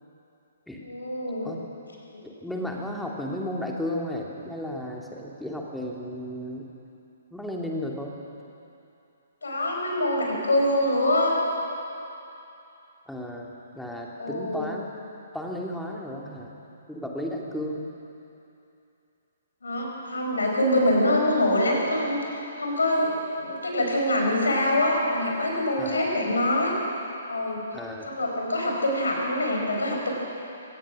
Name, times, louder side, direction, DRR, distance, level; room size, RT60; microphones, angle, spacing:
voice 1, 0.8-1.5 2.1-2.2 9.4-11.4 14.2-14.7 19.6-26.8 27.3-27.6 28.1-30.1, left 1 dB, 70° left, 0 dB, 5.2 m, -25 dB
voice 2, 2.2-6.7 7.3-8.2 13.1-13.5 13.7-14.9 15.3-16.5 16.9-17.9 25.8-26.0 27.7-28.1, left 1 dB, ahead, -2 dB, 2.4 m, -33 dB
24.0 x 18.0 x 6.3 m, 2.8 s
figure-of-eight pair, 125°, 0 cm